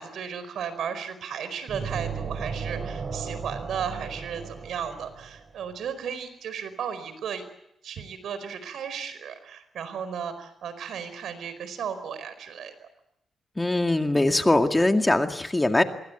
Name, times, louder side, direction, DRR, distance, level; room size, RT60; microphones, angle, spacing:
voice 1, 0.0-7.4 7.8-12.9, right 7 dB, 80° right, 12 dB, 4.7 m, -35 dB
sound 1, 1.7-5.5, right 5 dB, 50° right, 3.7 m, -35 dB
voice 2, 13.6-15.8, left 2 dB, 15° left, 6 dB, 2.1 m, -22 dB
26.0 x 22.5 x 8.1 m, 0.79 s
cardioid pair, 95°, 0 cm